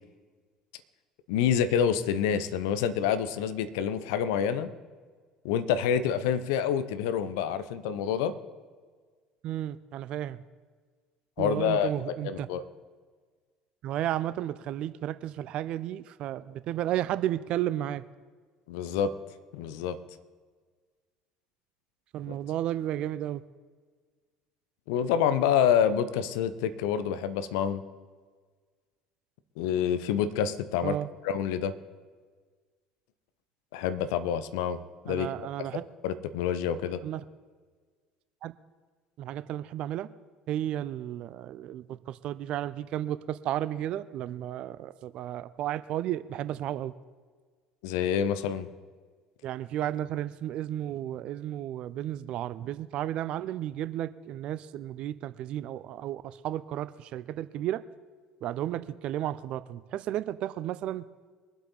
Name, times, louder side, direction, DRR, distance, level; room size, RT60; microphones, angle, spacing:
voice 1, 1.3-4.7 5.4-8.3 11.4-11.9 12.2-12.6 18.7-19.1 19.5-20.0 22.3-22.4 24.9-27.8 29.6-31.0 31.2-31.7 33.7-34.8 35.0-35.3 35.7-37.0 47.8-48.7, left 8 dB, 65° left, 12 dB, 0.8 m, -27 dB
voice 2, 9.4-10.4 11.4-12.5 13.8-18.0 22.1-23.4 30.8-31.1 35.1-35.9 37.0-37.2 38.4-38.5 39.2-40.1 40.5-46.9 49.4-57.8 58.4-61.0, right 12 dB, 50° right, 15 dB, 0.5 m, -33 dB
23.0 x 8.1 x 4.1 m, 1.5 s
figure-of-eight pair, 60°, 2 cm